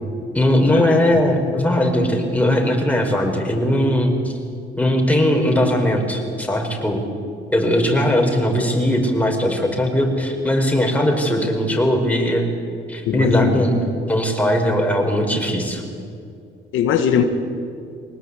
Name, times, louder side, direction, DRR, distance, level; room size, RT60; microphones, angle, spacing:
voice 1, 0.3-4.1 4.8-7.0 7.5-12.4 12.9-13.8 14.1-15.8, left 1 dB, 5° left, 2 dB, 5.1 m, -19 dB
voice 2, 13.1-13.6 16.7-17.2, left 8 dB, 85° left, 6 dB, 1.8 m, -19 dB
23.0 x 19.5 x 8.5 m, 2.4 s
cardioid pair, 90°, 20 cm